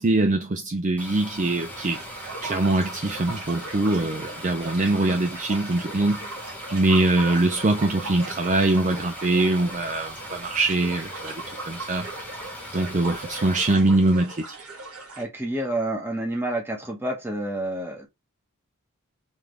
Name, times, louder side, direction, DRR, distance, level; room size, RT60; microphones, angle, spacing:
voice 1, 0.0-2.0 2.4-6.2 6.7-11.3 11.7-12.1 12.7-14.4, right 2 dB, 35° right, 0.5 m, -23 dB
sound 1, 1.0-13.7, left 1 dB, 5° left, 0.9 m, -40 dB
sound 2, 1.7-15.2, right 3 dB, 85° right, 1.9 m, -38 dB
voice 2, 15.2-18.1, right 1 dB, 10° right, 1.2 m, -29 dB
3.7 x 3.6 x 3.4 m
head